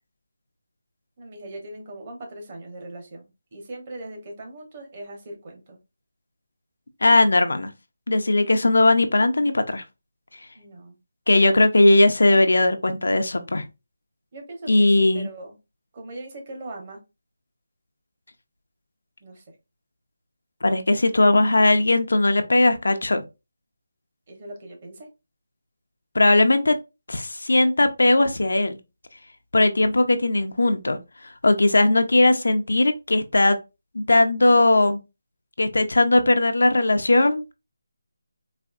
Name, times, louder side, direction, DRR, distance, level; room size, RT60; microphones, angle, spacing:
voice 1, 1.2-3.2 3.5-5.8 10.5-11.0 14.3-15.6 15.9-17.0 19.2-19.4 24.3-25.1, right 2 dB, 25° right, 0.9 m, -40 dB
voice 2, 7.0-7.7 8.1-9.8 11.3-13.6 14.7-15.3 20.6-23.2 26.1-26.8 27.1-28.8 29.5-31.0 31.4-33.6 33.9-35.0 35.6-37.5, left 2 dB, 85° left, 0.6 m, -18 dB
4.1 x 2.6 x 2.4 m
figure-of-eight pair, 175°, 0 cm